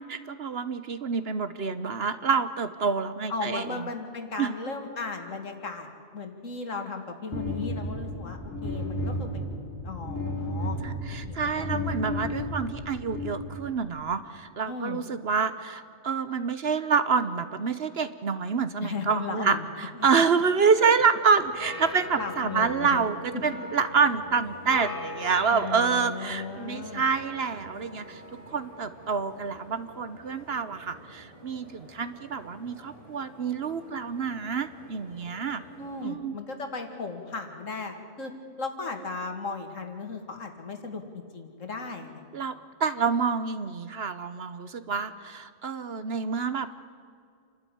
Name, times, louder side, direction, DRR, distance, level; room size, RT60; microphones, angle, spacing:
voice 1, 0.1-3.9 4.4-4.5 10.8-28.2 28.5-35.6 36.0-36.4 42.3-42.5 42.8-46.7, right 5 dB, 55° right, 12 dB, 1.1 m, -27 dB
voice 2, 3.3-5.9 6.1-9.6 9.8-10.8 11.3-11.8 14.7-15.0 18.8-20.1 20.8-20.9 22.2-23.0 25.5-27.0 35.8-38.3 38.6-42.2, left 4 dB, 75° left, 5 dB, 2.5 m, -36 dB
sound 1, 7.3-13.9, left 1 dB, 10° left, 6.2 m, -33 dB
sound 2, 21.3-36.1, left 1 dB, 25° left, 6.5 m, -43 dB
28.0 x 12.5 x 10.0 m, 2.3 s
omnidirectional pair, 1.4 m